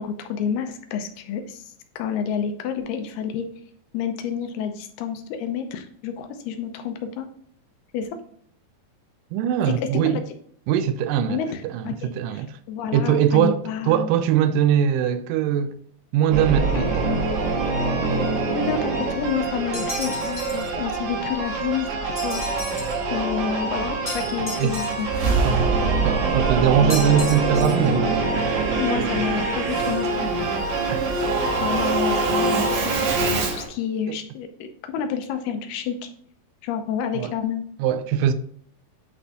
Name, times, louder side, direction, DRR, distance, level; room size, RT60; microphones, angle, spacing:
voice 1, 0.0-1.6 2.0-3.5 3.9-7.3 7.9-8.1 9.7-10.2 11.3-14.1 16.8-17.2 18.5-22.7 23.1-25.4 28.8-30.5 31.6-36.0 36.6-37.6, left 7 dB, 85° left, 2.8 m, -29 dB
voice 2, 9.3-10.2 10.7-12.5 12.9-15.8 16.1-17.1 24.6-24.8 25.4-25.8 26.0-28.3 29.1-29.2 30.9-31.1 34.1-34.2 37.1-37.3 37.8-38.3, right 9 dB, 85° right, 1.9 m, -22 dB
Singing / Musical instrument, 16.3-33.7, right 3 dB, 70° right, 3.0 m, -24 dB
sound 1, 19.7-20.7 22.2-23.0 24.1-25.2 26.9-27.9, left 1 dB, 35° left, 0.5 m, -35 dB
8.9 x 4.1 x 2.9 m
omnidirectional pair, 4.4 m